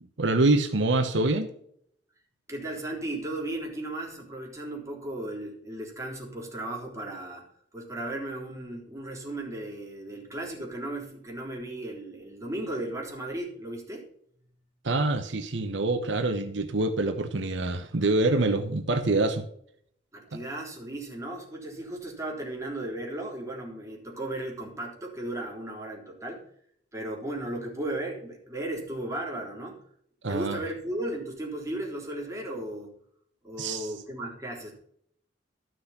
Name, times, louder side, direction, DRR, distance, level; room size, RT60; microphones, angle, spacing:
voice 1, 0.2-1.5 14.8-19.4 30.2-30.6 33.6-33.9, right 2 dB, 80° right, 8 dB, 1.0 m, -25 dB
voice 2, 2.5-7.4 7.7-14.0 20.1-26.4 26.9-29.8 30.3-33.0 33.4-34.7, right 1 dB, 15° right, -1 dB, 3.7 m, -35 dB
13.5 x 6.3 x 5.9 m, 0.67 s
head